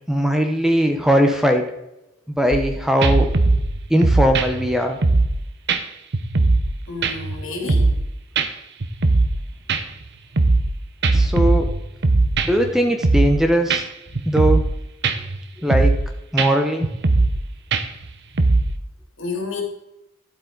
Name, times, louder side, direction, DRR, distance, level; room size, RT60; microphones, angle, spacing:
voice 1, 0.1-1.7 2.3-3.3 3.9-5.0 11.1-11.7 12.4-13.9 14.3-14.6 15.6-15.9 16.3-16.9, equal, ahead, 5 dB, 0.8 m, -19 dB
sound 1, 2.5-2.7 3.0-5.4 5.7-5.8 6.1-6.7 7.0-8.1 8.4-8.5 8.8-9.4 9.7-10.7 11.0-12.7 13.0-13.4 13.7-13.8 14.1-14.7 15.0-15.4 15.7-16.1 16.4-16.5 16.8-17.4 17.7-18.7, right 3 dB, 60° right, 0.9 m, -19 dB
voice 2, 6.9-7.9 14.1-14.2 15.6-15.7 19.2-19.6, left 3 dB, 70° left, 1 dB, 3.1 m, -30 dB
11.5 x 8.1 x 4.0 m, 0.88 s
head